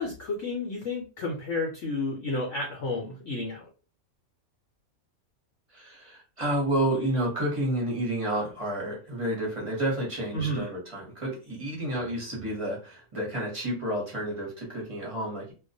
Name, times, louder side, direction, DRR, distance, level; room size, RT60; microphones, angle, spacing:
voice 1, 0.0-3.6 10.3-10.7, left 2 dB, 65° left, 0 dB, 0.8 m, -31 dB
voice 2, 5.7-15.5, right 1 dB, 30° right, -3 dB, 0.7 m, -30 dB
2.3 x 2.1 x 2.6 m, 0.34 s
omnidirectional pair, 1.5 m